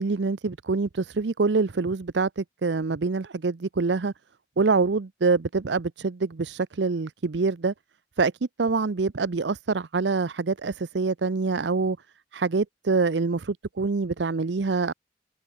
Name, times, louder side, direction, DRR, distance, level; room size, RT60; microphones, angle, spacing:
voice 1, 0.0-4.1 4.6-7.7 8.2-8.3 8.6-12.0 12.3-14.9, right 4 dB, 75° right, 0.6 m, -25 dB
head